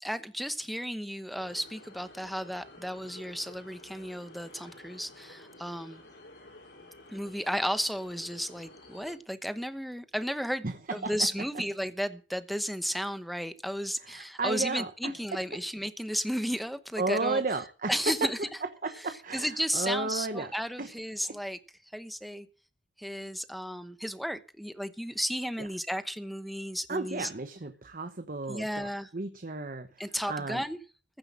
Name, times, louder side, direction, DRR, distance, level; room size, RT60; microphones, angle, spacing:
voice 1, 0.0-6.0 7.1-10.6 10.9-17.4 17.9-18.4 19.3-21.6 21.9-22.5 23.0-27.3 28.5-29.1 30.0-30.8, equal, ahead, 0.9 m, -33 dB
sound 1, 1.3-9.2, left 2 dB, 75° left, 6.6 m, -52 dB
voice 2, 10.6-11.1 14.0-15.4 17.0-18.3 18.8-20.5 20.8-20.9 21.2-21.4 25.6-25.7 26.9-30.6, right 3 dB, 50° right, 1.0 m, -33 dB
15.0 x 7.7 x 7.4 m
head